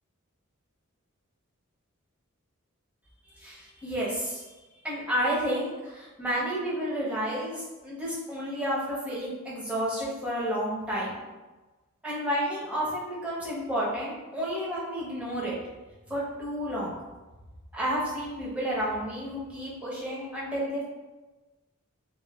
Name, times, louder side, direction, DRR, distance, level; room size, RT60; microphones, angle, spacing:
voice 1, 3.3-4.4 4.8-11.2 12.0-15.5 16.1-16.9 17.7-20.8, equal, 5° right, -7 dB, 0.6 m, -31 dB
3.0 x 2.0 x 2.3 m, 1.2 s
head